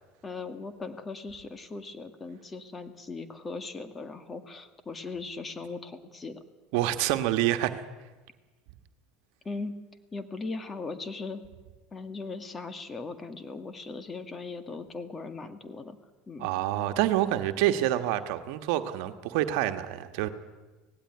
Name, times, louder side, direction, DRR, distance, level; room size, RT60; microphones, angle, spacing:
voice 1, 0.2-6.4 9.4-9.7 10.1-11.4 11.9-16.0 16.3-16.5, left 3 dB, 25° left, 9 dB, 2.0 m, -39 dB
voice 2, 6.7-7.8 16.4-20.3, right 13 dB, 70° right, 8 dB, 1.4 m, -27 dB
18.0 x 16.0 x 9.8 m, 1.3 s
supercardioid pair, 100°, 0 cm